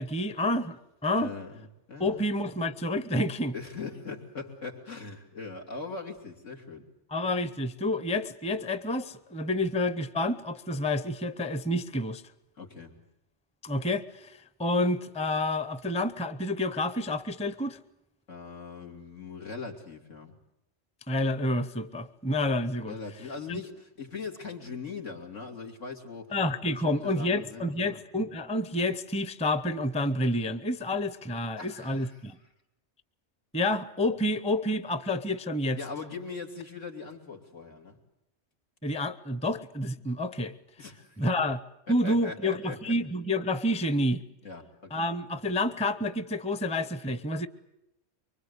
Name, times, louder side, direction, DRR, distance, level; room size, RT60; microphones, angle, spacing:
voice 1, 0.0-1.3 2.0-3.5 7.1-12.2 13.6-17.8 21.1-22.9 23.5-23.6 26.3-32.4 33.5-35.8 38.8-40.5 41.2-41.6 41.9-44.2 44.9-47.5, left 1 dB, 5° left, 13 dB, 0.7 m, -29 dB
voice 2, 1.2-2.3 3.5-6.8 12.6-12.9 18.3-20.3 22.8-26.3 26.7-28.0 31.6-32.3 35.7-38.0 40.8-41.3 41.9-42.9 44.4-45.0, left 4 dB, 85° left, 1 dB, 3.3 m, -41 dB
24.5 x 24.0 x 8.1 m, 0.86 s
omnidirectional pair, 1.2 m